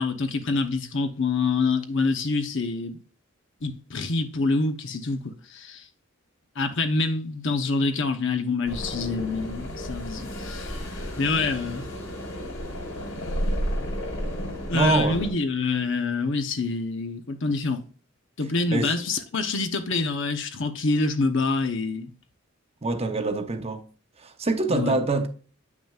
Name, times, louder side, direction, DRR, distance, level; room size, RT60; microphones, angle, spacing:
voice 1, 0.0-3.0 3.6-5.9 6.6-10.7 11.2-11.9 14.7-17.8 18.4-22.1 24.7-25.0, left 3 dB, 60° left, 0.9 m, -26 dB
sound 1, 8.7-15.3, equal, 90° left, 2.8 m, -32 dB
voice 2, 14.7-15.2 18.7-18.9 22.8-23.8 24.2-25.3, right 2 dB, 30° right, 0.9 m, -25 dB
8.9 x 6.0 x 2.4 m
head